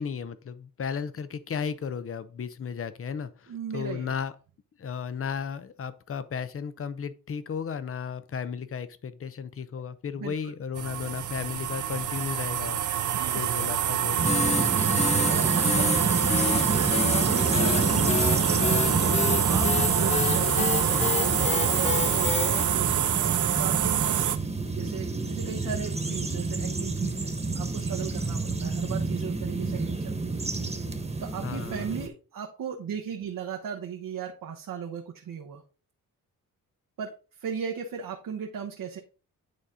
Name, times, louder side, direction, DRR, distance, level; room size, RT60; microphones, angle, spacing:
voice 1, 0.0-4.3 4.8-14.7 31.4-31.9, left 6 dB, 40° left, 13 dB, 0.7 m, -34 dB
voice 2, 3.5-4.1 10.2-10.5 13.1-13.5 14.1-19.1 19.4-23.1 23.6-30.3 31.2-35.6 37.0-39.0, right 7 dB, 80° right, 1 dB, 1.1 m, -37 dB
sound 1, 10.8-24.4, right 10 dB, 60° right, 0.6 m, -26 dB
sound 2, 14.2-32.1, right 3 dB, 20° right, 1.3 m, -29 dB
sound 3, 14.3-22.6, left 5 dB, 20° left, 0.4 m, -29 dB
9.6 x 4.1 x 3.8 m, 0.35 s
cardioid pair, 95°, 33 cm